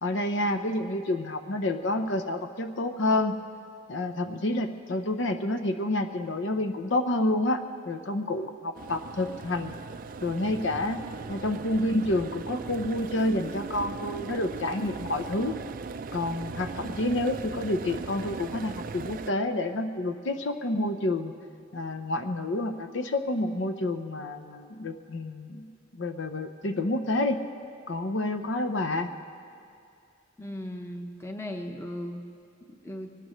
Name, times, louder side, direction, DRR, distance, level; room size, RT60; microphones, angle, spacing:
voice 1, 0.0-3.4 3.9-9.7 10.2-11.0 11.3-15.5 16.1-21.3 21.7-27.4 27.9-29.1, left 1 dB, 65° left, 7 dB, 0.7 m, -29 dB
sound 1, 8.7-19.3, right 4 dB, 45° right, 0.3 m, -38 dB
voice 2, 30.4-32.2 32.8-33.1, left 1 dB, 15° left, 3 dB, 0.9 m, -37 dB
24.0 x 18.5 x 3.1 m, 2.5 s
head